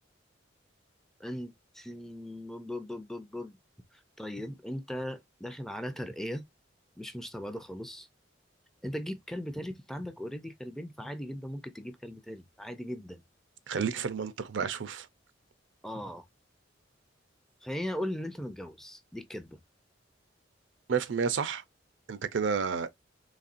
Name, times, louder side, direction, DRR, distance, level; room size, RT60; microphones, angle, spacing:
voice 1, 1.2-3.6 3.9-6.4 7.0-8.1 8.8-13.2 15.8-16.3 17.6-19.6, equal, ahead, 0.4 m, -38 dB
voice 2, 13.7-15.1 20.9-21.6 22.1-22.9, right 6 dB, 75° right, 0.5 m, -30 dB
4.1 x 3.1 x 2.5 m
head